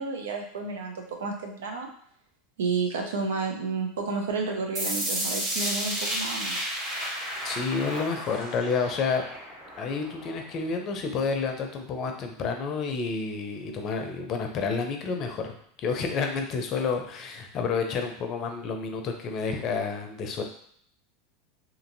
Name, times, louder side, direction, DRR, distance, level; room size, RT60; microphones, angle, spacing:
voice 1, 0.0-1.9 2.6-6.6, right 4 dB, 85° right, 2 dB, 0.6 m, -31 dB
sound 1, 4.7-10.7, right 1 dB, 40° right, 1.4 m, -32 dB
voice 2, 7.4-9.3 9.8-20.4, left 5 dB, 45° left, 4 dB, 0.5 m, -30 dB
2.8 x 2.6 x 2.6 m, 0.63 s
hypercardioid pair, 100°, 0 cm